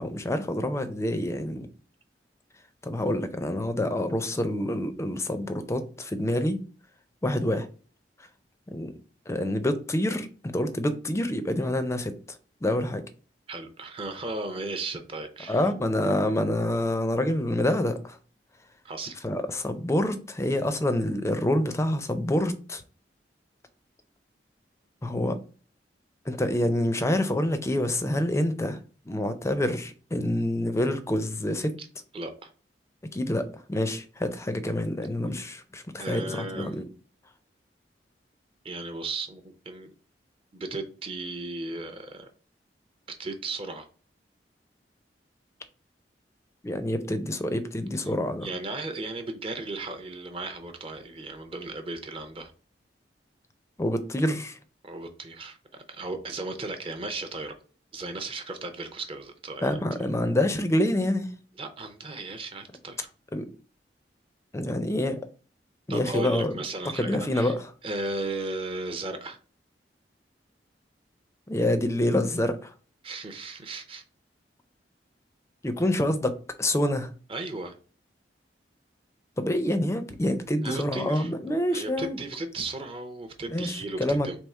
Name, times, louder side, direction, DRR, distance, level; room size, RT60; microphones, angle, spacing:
voice 1, 0.0-1.7 2.8-6.6 7.2-7.7 8.7-8.9 9.3-12.1 12.6-13.0 15.5-18.2 19.2-22.8 25.0-25.4 26.3-28.8 29.1-31.7 33.1-36.8 46.6-48.5 53.8-54.6 59.6-61.3 63.3-63.5 64.5-65.2 65.9-66.5 67.0-67.7 71.5-72.7 75.6-77.1 79.4-82.2 83.5-84.4, left 1 dB, 15° left, 0.4 m, -27 dB
voice 2, 13.5-15.7 18.8-19.1 31.8-31.9 32.1-32.5 36.0-36.9 38.6-39.4 39.7-39.9 40.5-42.3 43.2-43.9 48.4-52.5 54.8-57.6 57.9-59.8 61.6-63.1 65.9-67.5 67.8-69.4 73.0-74.0 77.3-77.7 80.6-81.3 81.7-84.4, right 2 dB, 30° right, 0.5 m, -35 dB
3.5 x 3.2 x 4.2 m
head